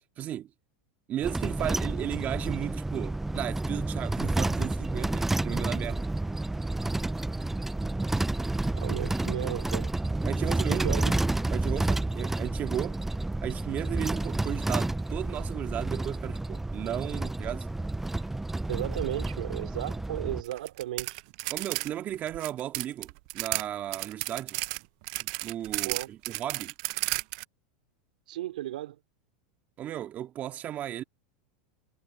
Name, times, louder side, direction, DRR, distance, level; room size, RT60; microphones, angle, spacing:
voice 1, 0.2-0.5 1.1-6.1 10.2-11.0 11.5-13.0 13.4-17.7 21.5-24.6 25.2-26.7 29.8-31.0, right 11 dB, 40° right, 2.0 m, -35 dB
sound 1, 1.2-20.4, right 2 dB, 5° right, 0.4 m, -30 dB
voice 2, 8.7-9.9 10.7-11.1 18.7-21.2 25.8-26.1 28.3-29.0, right 14 dB, 80° right, 4.1 m, -35 dB
sound 2, 20.4-21.9 22.1-23.6 23.9-27.4, right 26 dB, 60° right, 0.6 m, -33 dB
hypercardioid pair, 110°, 4 cm